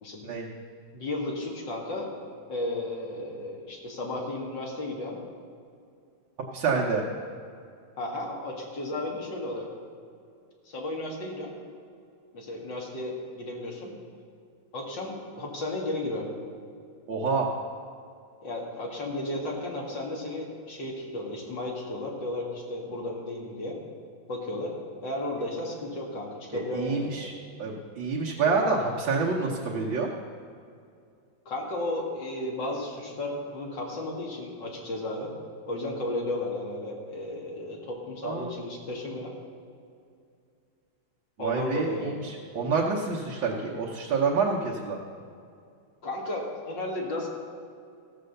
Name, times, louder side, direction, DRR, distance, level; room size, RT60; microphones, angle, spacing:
voice 1, 0.9-2.1 2.5-5.2 8.0-9.7 10.7-11.5 12.3-13.9 14.7-16.3 18.4-23.8 24.3-24.7 25.0-27.3 31.5-35.3 35.7-39.3 41.4-42.2 46.0-47.3, left 1 dB, 60° left, -1 dB, 2.6 m, -34 dB
voice 2, 6.5-7.0 17.1-17.5 26.5-27.3 27.6-30.1 38.2-38.5 41.4-45.0, right 4 dB, 70° right, -3 dB, 1.8 m, -27 dB
15.5 x 6.7 x 6.5 m, 2.4 s
omnidirectional pair, 2.2 m